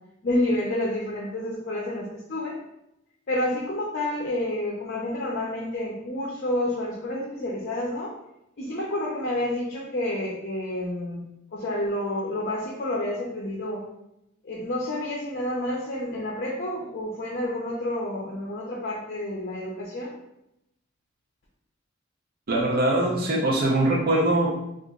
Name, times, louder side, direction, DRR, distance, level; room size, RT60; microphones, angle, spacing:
voice 1, 0.2-2.6 3.3-8.1 8.6-11.2 11.5-13.8 14.4-20.1, left 1 dB, 50° left, -3 dB, 0.6 m, -29 dB
voice 2, 22.5-24.5, right 1 dB, 50° right, -3 dB, 0.6 m, -22 dB
2.9 x 2.4 x 3.6 m, 0.85 s
head